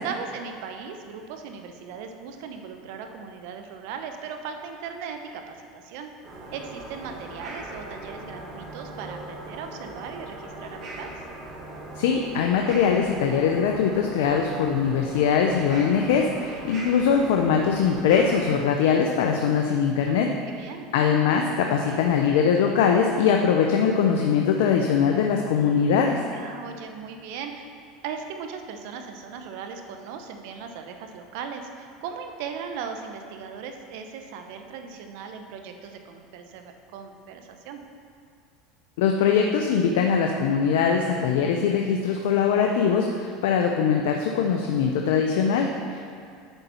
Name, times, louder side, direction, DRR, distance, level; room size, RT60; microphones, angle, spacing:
voice 1, 0.0-6.1 6.5-11.1 20.1-20.9 26.3-27.7 28.0-37.8, right 6 dB, 70° right, 5 dB, 0.8 m, -38 dB
sound 1, 6.2-18.4, right 1 dB, 50° right, 2.1 m, -39 dB
voice 2, 12.0-20.3 20.9-26.2 39.0-46.0, left 6 dB, 80° left, 2 dB, 0.5 m, -22 dB
9.0 x 4.1 x 5.6 m, 2.3 s
supercardioid pair, 105°, 0 cm